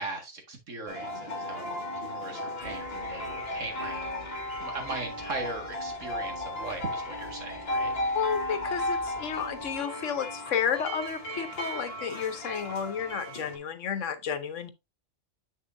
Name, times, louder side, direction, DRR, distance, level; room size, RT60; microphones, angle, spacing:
voice 1, 0.0-4.3 4.6-7.9, right 3 dB, 85° right, 2.2 m, -39 dB
sound 1, 0.9-13.6, left 1 dB, 55° left, 1.8 m, -35 dB
sound 2, 2.6-9.8, left 2 dB, 35° left, 2.9 m, -48 dB
voice 2, 8.1-14.7, left 7 dB, 75° left, 1.2 m, -31 dB
7.6 x 6.5 x 2.6 m
omnidirectional pair, 1.3 m